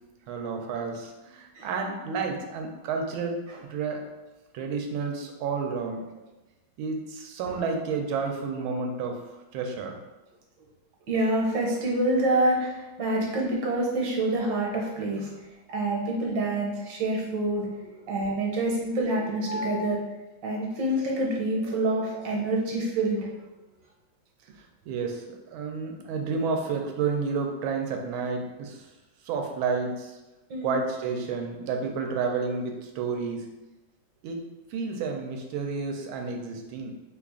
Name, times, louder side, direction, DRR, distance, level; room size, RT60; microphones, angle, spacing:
voice 1, 0.3-4.1 4.5-6.0 6.8-9.2 9.5-10.0 24.9-28.9 29.2-30.2 30.6-33.5 34.2-34.4 34.7-36.9, right 4 dB, 85° right, 3 dB, 1.4 m, -30 dB
voice 2, 11.1-20.0 20.4-23.3 30.5-30.8, right 1 dB, 65° right, -2 dB, 1.4 m, -27 dB
3.4 x 2.4 x 3.5 m, 1.1 s
omnidirectional pair, 2.2 m